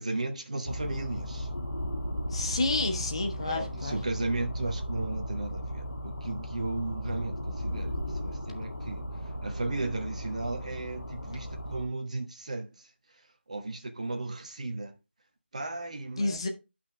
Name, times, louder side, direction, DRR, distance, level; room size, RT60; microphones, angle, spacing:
voice 1, 0.0-1.5 3.4-14.9 15.5-16.5, right 2 dB, 35° right, 1.3 m, -35 dB
sound 1, 0.7-11.9, equal, 55° left, 1.4 m, -36 dB
voice 2, 2.3-4.0 16.2-16.5, left 3 dB, 30° left, 1.1 m, -30 dB
9.6 x 5.8 x 3.3 m
figure-of-eight pair, 165°, 6 cm